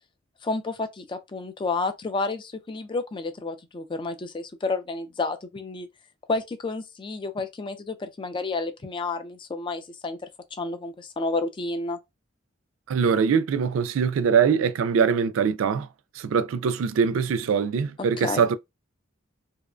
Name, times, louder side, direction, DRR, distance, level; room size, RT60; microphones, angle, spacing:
voice 1, 0.4-5.9 6.3-10.2 10.5-12.0 18.2-18.4, left 3 dB, 25° left, 0.3 m, -30 dB
voice 2, 12.9-15.9 16.2-18.6, right 6 dB, 80° right, 0.3 m, -23 dB
2.7 x 2.2 x 2.4 m
head